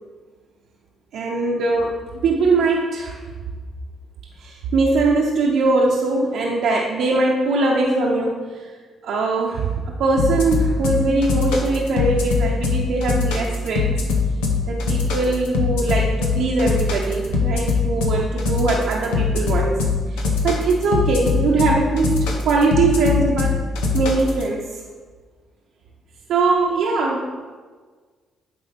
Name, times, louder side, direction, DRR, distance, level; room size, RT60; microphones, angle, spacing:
voice 1, 1.1-1.9 2.2-3.2 4.4-8.7 9.0-13.9 14.7-19.7 20.1-23.6 23.9-24.8 26.3-27.3, right 3 dB, 75° right, -3 dB, 0.9 m, -21 dB
sound 1, 10.2-24.4, left 4 dB, 90° left, 1.0 m, -21 dB
8.7 x 3.5 x 5.2 m, 1.5 s
supercardioid pair, 60°, 0 cm